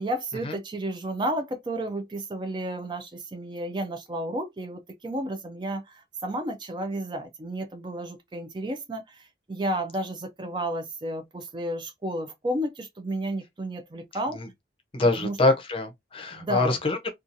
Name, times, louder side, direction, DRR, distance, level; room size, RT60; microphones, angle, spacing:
voice 1, 0.0-9.2 9.5-14.4 15.2-15.4 16.3-16.8, right 1 dB, 25° right, 0.3 m, -32 dB
voice 2, 14.9-17.1, left 2 dB, 30° left, 0.6 m, -25 dB
2.7 x 2.3 x 2.5 m
head